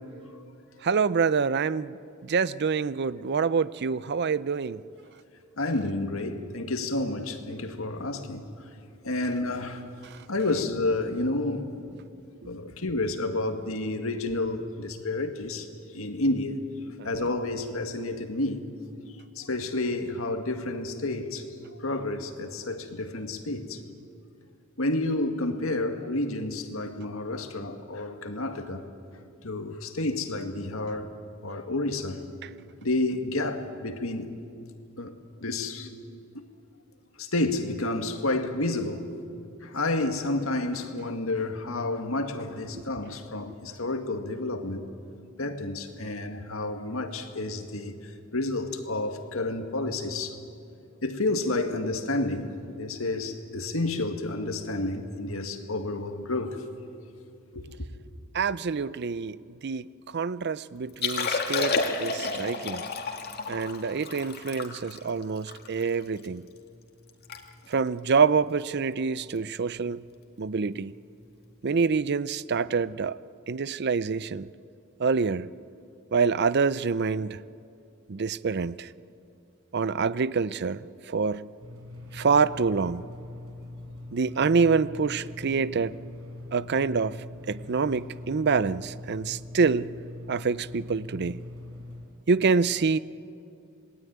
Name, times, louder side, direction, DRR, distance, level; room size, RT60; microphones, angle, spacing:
voice 1, 0.8-2.0 2.2-4.8 10.0-10.2 17.0-17.3 32.4-32.5 42.7-42.8 58.3-62.8 63.5-66.4 67.7-70.0 70.4-70.9 71.6-73.2 73.5-74.5 75.0-75.5 76.1-77.4 78.1-78.9 79.7-81.5 82.1-83.0 84.1-86.0 86.5-89.9 90.3-91.4 92.3-93.0, right 5 dB, 55° right, 0.5 m, -26 dB
voice 2, 5.6-8.5 9.0-9.8 10.3-12.0 12.4-15.7 15.9-16.6 17.0-18.7 19.4-21.4 21.8-23.8 24.8-28.9 29.4-31.1 31.4-32.3 32.8-34.3 35.0-35.1 35.4-36.4 37.2-39.0 39.6-44.9 45.4-47.9 48.3-50.4 51.0-56.6 57.5-57.8, left 2 dB, 80° left, 2.0 m, -30 dB
Liquid, 60.9-66.3 66.7-66.8 67.1-67.4 67.7-67.9 68.5-68.7 70.2-70.3, left 4 dB, 50° left, 2.1 m, -31 dB
sound 1, 81.6-92.0, left 2 dB, 90° right, 5.8 m, -42 dB
27.0 x 20.0 x 9.5 m
head